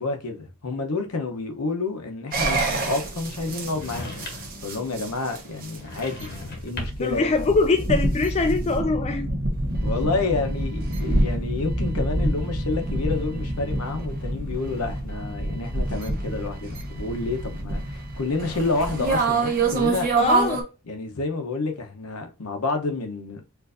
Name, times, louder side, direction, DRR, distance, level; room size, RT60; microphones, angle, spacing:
voice 1, 0.0-4.1 4.6-7.3 9.8-20.1 20.9-23.4, left 3 dB, 80° left, 0.8 m, -29 dB
sound 1, 2.3-20.6, right 2 dB, 40° right, 1.0 m, -27 dB
sound 2, 3.7-4.6 5.7-7.2, left 2 dB, 45° left, 0.9 m, -37 dB
voice 2, 7.0-9.3 20.2-20.6, left 3 dB, 30° left, 0.3 m, -23 dB
4.5 x 2.5 x 2.5 m
head